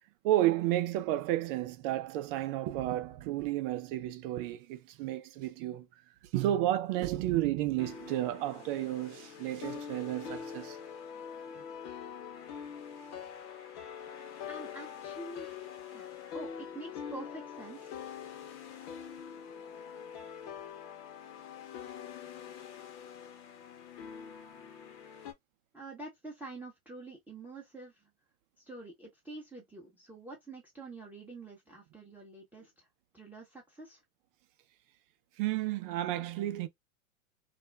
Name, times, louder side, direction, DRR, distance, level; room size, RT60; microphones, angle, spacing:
voice 1, 0.2-5.9 6.3-10.8 35.4-36.7, right 14 dB, 40° right, 0.5 m, -32 dB
sound 1, 7.8-25.3, left 7 dB, 50° left, 0.8 m, -44 dB
voice 2, 14.5-15.5 15.9-16.1 16.3-18.0 25.7-28.1 28.6-32.9 33.1-34.0, right 2 dB, 5° right, 0.7 m, -47 dB
2.5 x 2.0 x 3.2 m
hypercardioid pair, 110°, 43 cm